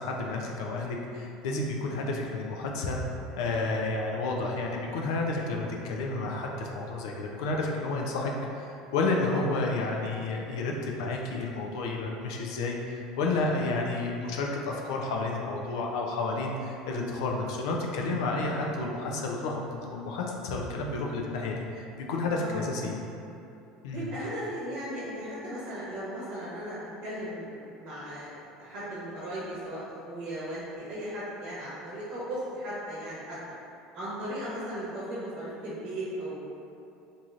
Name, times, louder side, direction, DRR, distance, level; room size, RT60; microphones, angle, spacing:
voice 1, 0.0-3.0 3.4-23.0 23.8-24.1, left 3 dB, 85° left, 0 dB, 0.4 m, -31 dB
voice 2, 22.4-22.7 23.9-33.4 33.9-36.3, equal, 55° right, -9 dB, 0.9 m, -37 dB
3.0 x 2.6 x 2.4 m, 2.7 s
supercardioid pair, 100°, 3 cm